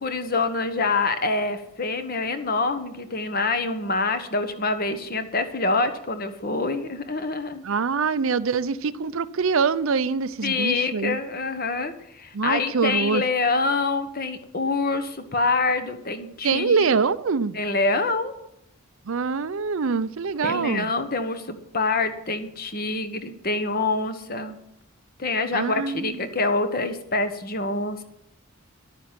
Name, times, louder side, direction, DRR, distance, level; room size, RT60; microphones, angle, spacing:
voice 1, 0.0-7.6 10.4-17.0 17.5-18.3 20.4-24.6 25.2-28.0, left 3 dB, 40° left, 1.3 m, -26 dB
voice 2, 7.6-11.2 12.3-13.2 16.4-17.6 19.1-20.9 25.5-26.2, right 5 dB, 65° right, 0.5 m, -24 dB
11.0 x 9.5 x 7.5 m
head